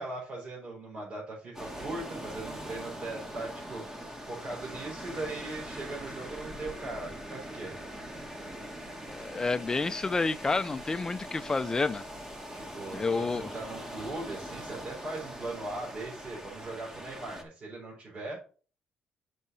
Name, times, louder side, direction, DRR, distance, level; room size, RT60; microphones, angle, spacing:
voice 1, 0.0-7.7 12.5-18.4, right 2 dB, 45° right, 4.5 m, -39 dB
sound 1, 1.5-17.4, equal, 15° right, 1.5 m, -42 dB
voice 2, 9.1-12.0 12.9-13.5, left 3 dB, 20° left, 0.5 m, -29 dB
6.6 x 4.1 x 6.1 m
cardioid pair, 110°, 3 cm